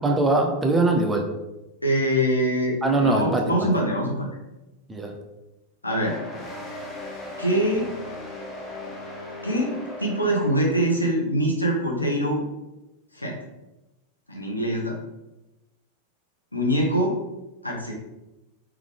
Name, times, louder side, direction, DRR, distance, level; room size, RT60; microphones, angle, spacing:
voice 1, 0.0-1.3 2.8-3.7 4.9-5.2, right 2 dB, 15° right, 2 dB, 0.6 m, -22 dB
voice 2, 1.8-4.3 5.8-6.2 7.4-7.9 9.4-9.7 10.0-12.4 13.2-13.3 14.3-14.9 16.5-17.1 17.6-17.9, equal, 85° left, -1 dB, 0.8 m, -23 dB
sound 1, 5.9-11.0, left 2 dB, 20° left, 0.9 m, -37 dB
3.5 x 3.3 x 3.5 m, 0.99 s
figure-of-eight pair, 90°, 0 cm